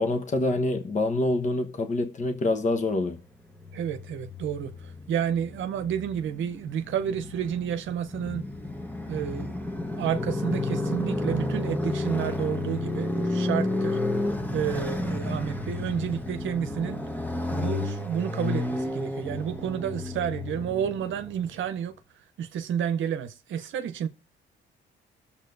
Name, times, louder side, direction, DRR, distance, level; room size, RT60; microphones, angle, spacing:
voice 1, 0.0-3.2, left 2 dB, 35° left, 1.1 m, -26 dB
Motorcycle, 3.5-21.7, left 2 dB, 10° left, 1.2 m, -32 dB
voice 2, 3.7-8.5 9.1-9.5 10.0-14.0 14.5-17.0 17.5-21.9 22.4-24.1, right 9 dB, 75° right, 0.8 m, -30 dB
20.0 x 7.3 x 2.6 m
cardioid pair, 90°, 20 cm